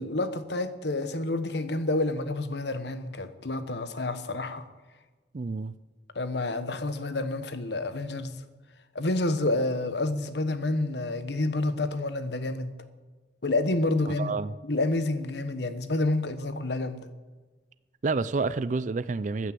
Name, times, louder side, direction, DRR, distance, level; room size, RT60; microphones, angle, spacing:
voice 1, 0.0-4.6 6.1-8.4 8.9-12.7 13.4-17.1, left 2 dB, 65° left, 11 dB, 1.2 m, -29 dB
voice 2, 5.3-5.7 14.2-14.6 18.0-19.5, right 4 dB, 40° right, 16 dB, 0.4 m, -29 dB
15.0 x 9.9 x 7.7 m, 1.3 s
head